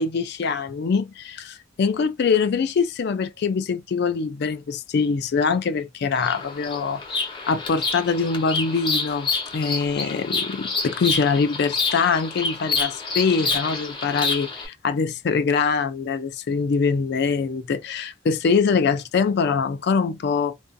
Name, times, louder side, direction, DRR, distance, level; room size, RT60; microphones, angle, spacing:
voice 1, 0.0-7.0 7.5-20.6, left 5 dB, 55° left, 0.4 m, -23 dB
Bird vocalization bird call bird song, 6.2-14.7, left 4 dB, 25° left, 0.7 m, -28 dB
2.5 x 2.4 x 2.3 m
head